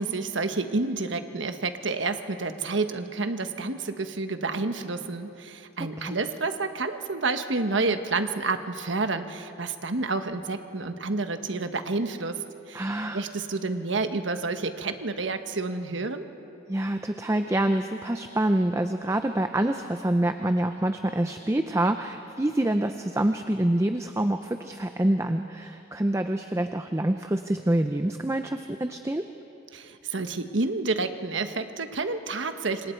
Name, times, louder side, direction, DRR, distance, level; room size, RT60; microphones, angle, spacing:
voice 1, 0.0-12.4 12.7-12.8 13.1-16.2 29.7-32.9, right 3 dB, 75° right, 8 dB, 1.2 m, -29 dB
voice 2, 12.7-13.3 16.7-29.3, right 1 dB, 15° right, 7 dB, 0.5 m, -26 dB
27.0 x 25.5 x 4.5 m, 2.8 s
head